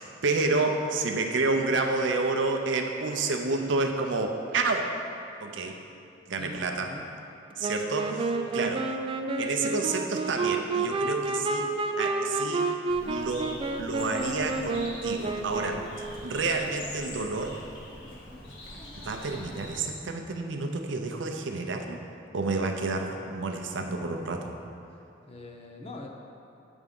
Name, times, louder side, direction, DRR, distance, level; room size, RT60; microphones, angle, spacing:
voice 1, 0.0-4.9 5.4-5.8 6.3-7.0 7.6-8.9 9.4-11.7 12.0-12.7 13.0-17.6 19.0-22.0 22.3-24.5, right 3 dB, 80° right, 3 dB, 0.6 m, -29 dB
voice 2, 6.4-7.1 8.4-8.8 25.3-26.1, left 2 dB, 30° left, 1 dB, 0.6 m, -43 dB
Wind instrument woodwind instrument, 7.6-16.0, right 3 dB, 30° right, 0.3 m, -30 dB
Bird, 12.9-19.8, left 1 dB, 70° left, 1.2 m, -43 dB
8.4 x 3.5 x 5.2 m, 2.8 s
head